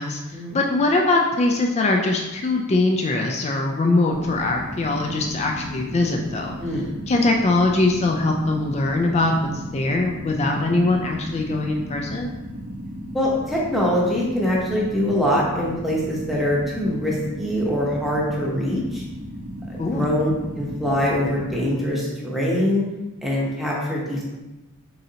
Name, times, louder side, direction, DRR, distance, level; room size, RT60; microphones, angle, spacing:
voice 1, 0.5-6.6 7.1-9.3 9.7-12.3 19.8-20.1, left 2 dB, 30° left, 1 dB, 0.3 m, -22 dB
sound 1, 4.1-21.6, equal, 40° right, 0.5 m, -35 dB
voice 2, 6.6-6.9 13.1-19.0 19.7-20.3 20.6-22.9 23.2-24.2, equal, ahead, -5 dB, 0.8 m, -23 dB
4.2 x 3.8 x 2.8 m, 1.1 s
head